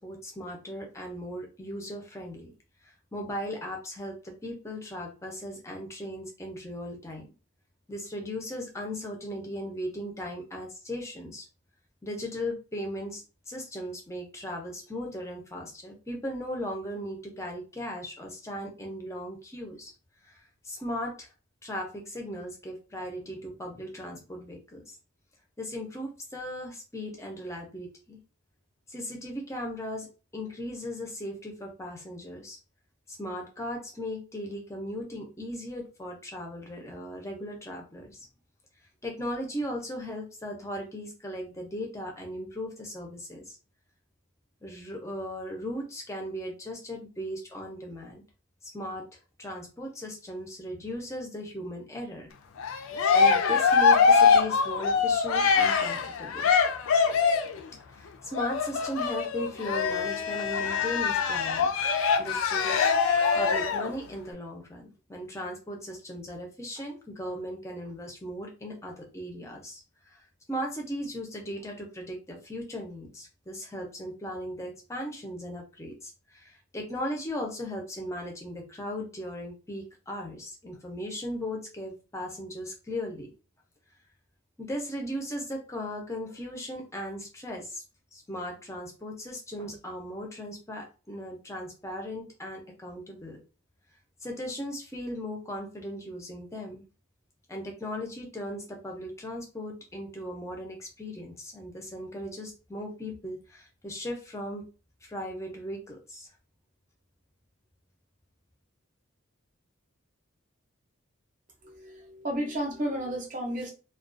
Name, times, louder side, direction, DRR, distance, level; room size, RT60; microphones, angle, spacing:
voice 1, 0.0-2.5 2.8-7.3 7.9-11.5 12.0-19.9 20.2-21.3 21.6-24.8 25.6-28.2 28.9-32.6 33.1-38.3 39.0-43.6 44.6-48.2 48.6-49.1 49.4-52.3 53.1-56.5 57.9-61.7 62.2-69.8 70.1-70.2 70.5-83.3 84.6-87.8 88.1-93.4 94.2-96.8 97.5-104.7 105.0-106.3, equal, 15° left, 1 dB, 0.5 m, -37 dB
Cheering, 52.6-57.6 58.3-63.9, left 5 dB, 80° left, 0.4 m, -23 dB
voice 2, 111.6-113.7, right 1 dB, 35° right, 0 dB, 0.6 m, -32 dB
2.3 x 2.2 x 2.5 m, 0.33 s
head